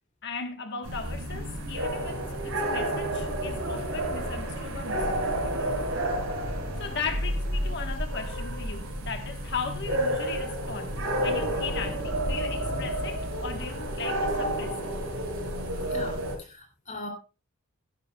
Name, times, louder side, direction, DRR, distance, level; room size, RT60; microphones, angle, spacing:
voice 1, 0.2-5.7 6.0-6.2 6.8-14.8, left 5 dB, 55° left, 1.2 m, -37 dB
sound 1, 0.8-16.4, right 1 dB, 85° right, 5.2 m, -30 dB
voice 2, 15.9-17.1, left 2 dB, 35° left, 2.8 m, -40 dB
16.5 x 10.0 x 2.3 m
head